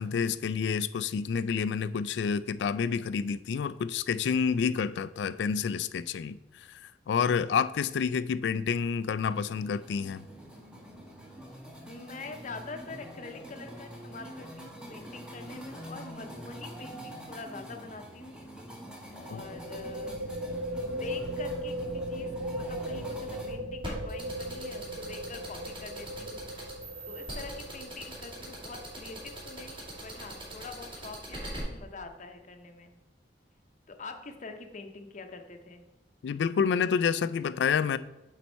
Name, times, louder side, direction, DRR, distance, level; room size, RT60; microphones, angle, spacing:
voice 1, 0.0-10.3 19.3-19.4 36.2-38.0, left 6 dB, 70° left, 0.3 m, -29 dB
sound 1, 9.3-23.5, equal, 5° right, 1.0 m, -45 dB
voice 2, 11.9-18.4 19.1-20.2 20.9-26.4 27.1-32.9 33.9-35.8, left 3 dB, 45° left, 0.7 m, -45 dB
sound 2, 16.1-16.4 16.6-16.7 19.2-30.6, equal, 45° right, 0.5 m, -38 dB
sound 3, 23.8-31.6, right 1 dB, 30° right, 2.6 m, -41 dB
8.5 x 4.2 x 4.4 m
head